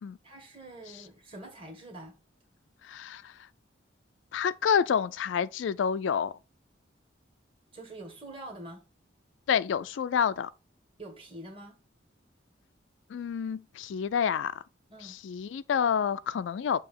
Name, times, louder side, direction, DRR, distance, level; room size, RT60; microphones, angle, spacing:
voice 1, 0.2-2.1 7.7-8.8 11.0-11.8 14.9-15.1, right 1 dB, 30° right, 1.7 m, -45 dB
voice 2, 2.9-3.3 4.3-6.3 9.5-10.5 13.1-14.5 15.0-16.8, left 7 dB, 75° left, 0.3 m, -28 dB
6.9 x 2.8 x 5.3 m
head